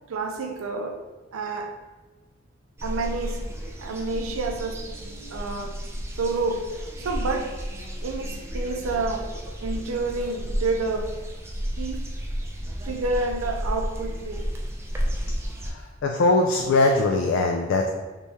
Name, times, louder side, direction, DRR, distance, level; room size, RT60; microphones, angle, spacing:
voice 1, 0.1-1.0 1.3-1.7 2.8-3.4 3.8-4.8 5.3-5.8 6.2-7.6 8.0-9.3 9.6-11.1 11.8-12.1 12.8-14.5, right 3 dB, 80° right, 3 dB, 0.4 m, -29 dB
sound 1, 2.8-15.7, equal, 15° right, 0.4 m, -32 dB
voice 2, 15.6-17.9, left 2 dB, 60° left, 2 dB, 0.3 m, -21 dB
3.0 x 2.8 x 3.4 m, 1.2 s
head